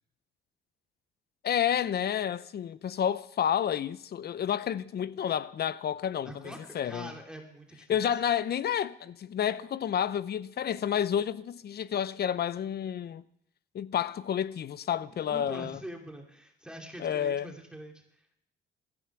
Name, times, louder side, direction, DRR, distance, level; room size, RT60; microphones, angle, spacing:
voice 1, 1.4-7.1 7.9-13.2 13.7-15.8 17.0-17.5, left 9 dB, 55° left, 0.7 m, -30 dB
voice 2, 6.2-8.0 15.1-18.5, right 1 dB, 5° right, 2.6 m, -45 dB
16.5 x 13.5 x 6.0 m
cardioid pair, 90°, 20 cm